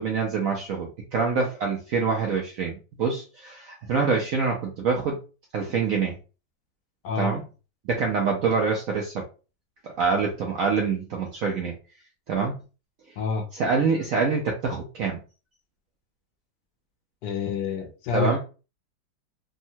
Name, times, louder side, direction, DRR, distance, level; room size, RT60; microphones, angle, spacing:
voice 1, 0.0-5.2 5.5-6.1 7.2-7.4 7.9-9.2 9.8-11.8 12.3-12.6 13.5-15.2 18.1-18.4, right 5 dB, 70° right, 0 dB, 0.8 m, -25 dB
voice 2, 13.2-13.5 17.2-18.4, left 5 dB, 75° left, 5 dB, 1.2 m, -28 dB
3.5 x 2.1 x 2.7 m, 0.33 s
omnidirectional pair, 2.0 m